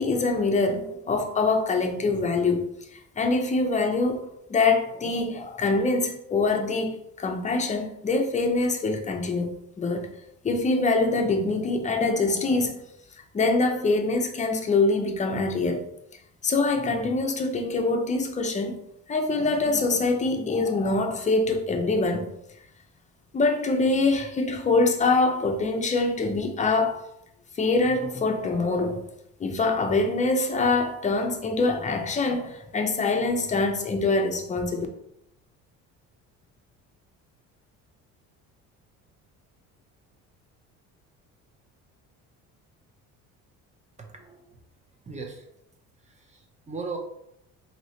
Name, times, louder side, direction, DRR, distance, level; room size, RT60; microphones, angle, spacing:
voice 1, 0.0-10.1 10.4-12.8 13.3-15.8 16.4-18.8 19.1-22.3 23.3-27.1 27.6-29.0 29.4-34.9, left 3 dB, 20° left, 0.5 m, -24 dB
voice 2, 44.0-44.4 45.1-45.5 46.0-47.0, right 4 dB, 20° right, 0.6 m, -38 dB
3.0 x 2.8 x 2.8 m
cardioid pair, 95°, 34 cm